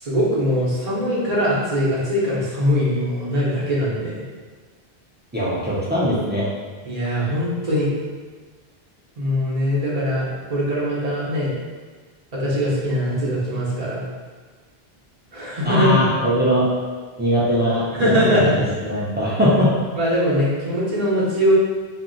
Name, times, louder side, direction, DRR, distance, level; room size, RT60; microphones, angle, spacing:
voice 1, 0.0-4.2 6.8-7.9 9.2-11.5 12.3-14.0 15.3-16.1 17.9-18.6 20.0-21.5, equal, 40° right, -7 dB, 0.8 m, -21 dB
voice 2, 5.3-6.4 15.6-16.7 17.2-18.4 18.8-19.7, equal, 20° right, -8 dB, 0.3 m, -20 dB
2.6 x 2.1 x 3.8 m, 1.4 s
omnidirectional pair, 1.0 m